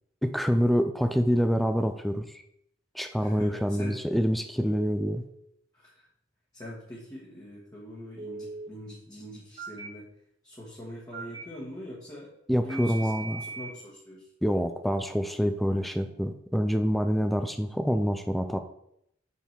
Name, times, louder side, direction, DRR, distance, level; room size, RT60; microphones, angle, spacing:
voice 1, 0.2-2.2 2.9-5.2 12.5-13.4 14.4-18.6, equal, ahead, 8 dB, 0.4 m, -26 dB
voice 2, 3.2-4.0 5.7-6.1 6.5-10.1 10.4-12.3 12.6-13.1 13.4-14.3, left 1 dB, 20° left, -5 dB, 1.4 m, -43 dB
Telephone, 4.7-5.2 8.2-8.7 9.6-9.9 11.1-11.4 12.7-13.7, right 4 dB, 25° right, 1.3 m, -39 dB
6.5 x 5.7 x 4.5 m, 0.75 s
head